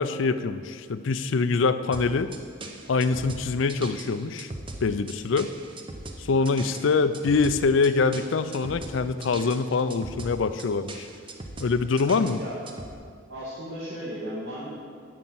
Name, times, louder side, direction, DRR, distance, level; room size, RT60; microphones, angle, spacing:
voice 1, 0.0-2.3 2.9-4.5 4.8-5.5 6.2-11.1 11.6-12.4, left 4 dB, 70° left, 12 dB, 0.4 m, -24 dB
sound 1, 1.9-12.9, right 2 dB, 25° right, 0.7 m, -40 dB
voice 2, 13.3-14.7, equal, 70° right, -11 dB, 2.5 m, -36 dB
9.4 x 5.7 x 7.5 m, 2.1 s
head